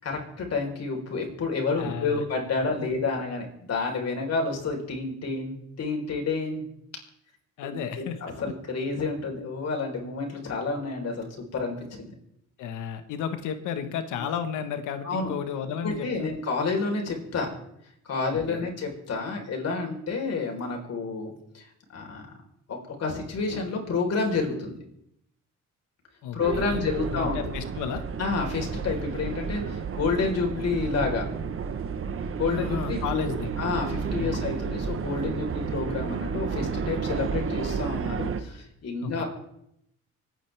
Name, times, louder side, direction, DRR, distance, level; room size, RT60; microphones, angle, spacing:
voice 1, 0.0-6.7 7.6-12.1 15.0-15.3 15.8-17.5 18.0-22.3 22.7-24.8 26.3-27.4 28.2-31.3 32.4-39.2, left 4 dB, 55° left, 1 dB, 4.2 m, -29 dB
voice 2, 1.8-2.2 7.6-8.4 12.6-16.3 18.5-18.7 26.2-28.0 32.5-33.5 34.2-34.4 39.0-39.2, left 8 dB, 90° left, 9 dB, 1.4 m, -33 dB
sound 1, 26.4-38.4, right 6 dB, 45° right, 1.1 m, -31 dB
25.5 x 9.3 x 3.5 m, 0.77 s
cardioid pair, 90°, 30 cm